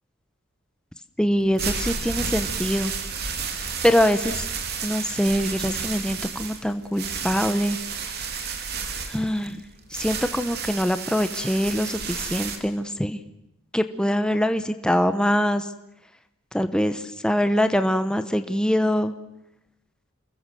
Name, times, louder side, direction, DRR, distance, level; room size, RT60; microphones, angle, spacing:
voice 1, 1.2-2.9 3.8-4.5 4.8-7.8 9.1-9.6 9.9-13.2 13.7-15.7 16.5-19.1, equal, 5° left, 9 dB, 1.0 m, -23 dB
sound 1, 1.4-12.6, right 5 dB, 50° right, 3.4 m, -31 dB
29.0 x 21.5 x 7.8 m, 0.83 s
head